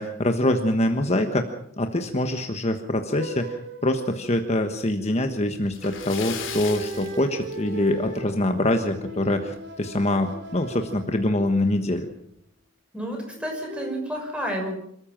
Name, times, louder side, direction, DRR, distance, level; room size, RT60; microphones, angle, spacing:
voice 1, 0.0-1.4 1.8-12.1, left 1 dB, 35° left, 6 dB, 1.3 m, -24 dB
sound 1, 3.1-4.8 5.8-11.9 13.3-14.0, right 1 dB, 60° right, 3.5 m, -38 dB
Splash splatter, 5.7-8.1 8.4-8.5 9.0-9.1 10.5-10.6 10.9-11.0 11.7-11.9, left 8 dB, 80° left, 3.1 m, -37 dB
voice 2, 12.9-14.8, equal, 5° right, 1 dB, 6.1 m, -30 dB
27.0 x 14.0 x 7.4 m, 0.73 s
head